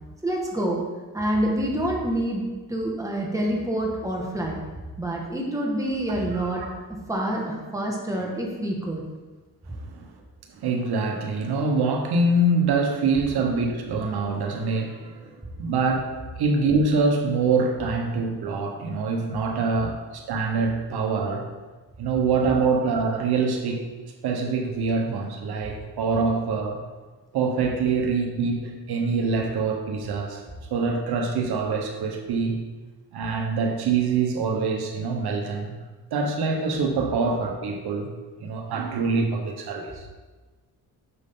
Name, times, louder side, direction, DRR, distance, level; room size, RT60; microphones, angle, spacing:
voice 1, 0.2-0.8 1.1-2.4 2.7-4.6 5.0-6.6 7.1-9.0, right 1 dB, 10° right, -1 dB, 1.7 m, -27 dB
voice 2, 9.7-10.1 10.5-21.5 22.0-23.8 24.2-26.8 27.3-30.4 30.7-32.6 33.1-35.8 36.1-38.1 38.4-40.0, right 4 dB, 75° right, 3 dB, 1.2 m, -25 dB
8.2 x 6.6 x 3.8 m, 1.3 s
cardioid pair, 105°, 39 cm